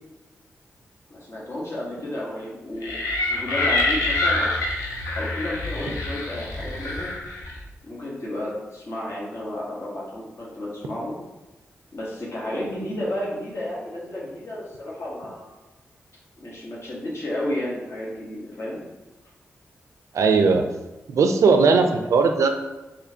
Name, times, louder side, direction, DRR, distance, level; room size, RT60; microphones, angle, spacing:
voice 1, 1.1-2.9 3.3-4.6 5.2-7.1 7.8-11.2 11.9-15.5 16.4-18.8, left 1 dB, 55° left, -6 dB, 1.1 m, -32 dB
sound 1, 2.8-7.6, left 2 dB, 85° left, 0.6 m, -26 dB
voice 2, 20.1-20.6 21.1-22.5, right 4 dB, 75° right, 6 dB, 0.4 m, -18 dB
4.2 x 2.5 x 2.8 m, 1.1 s
supercardioid pair, 45°, 5 cm